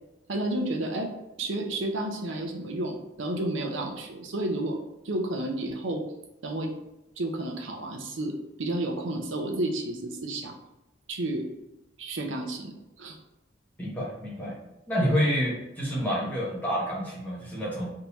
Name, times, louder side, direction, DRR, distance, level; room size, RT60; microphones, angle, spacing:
voice 1, 0.3-1.1 1.4-4.8 5.0-6.0 6.4-6.7 7.2-8.3 8.6-10.5 11.1-11.5 12.0-13.2, right 1 dB, 80° right, 3 dB, 0.6 m, -31 dB
voice 2, 13.8-14.6 14.9-17.9, equal, 10° left, -7 dB, 0.9 m, -28 dB
3.5 x 2.7 x 2.9 m, 0.94 s
head